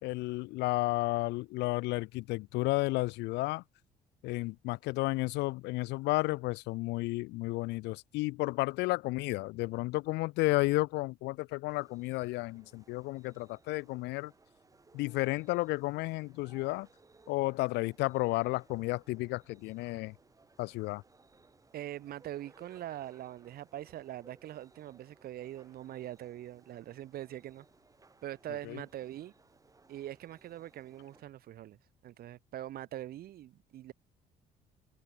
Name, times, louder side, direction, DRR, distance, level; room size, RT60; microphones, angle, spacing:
voice 1, 0.0-3.6 4.2-14.3 14.9-16.9 17.3-20.1 20.6-21.0 28.7-28.8, left 21 dB, 90° left, 0.9 m, -32 dB
sound 1, 11.7-31.2, right 3 dB, 20° right, 7.0 m, -63 dB
voice 2, 21.7-27.6 28.2-29.3 29.9-33.9, right 13 dB, 65° right, 1.7 m, -43 dB
open air
cardioid pair, 110°, 17 cm